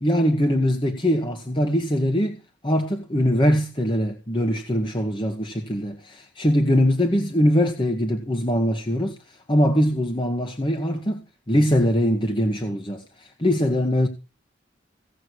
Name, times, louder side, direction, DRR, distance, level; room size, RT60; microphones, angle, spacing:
voice 1, 0.0-2.4 2.6-9.2 9.5-11.2 11.5-14.1, equal, 25° left, 1.5 m, -22 dB
17.0 x 7.7 x 6.4 m
head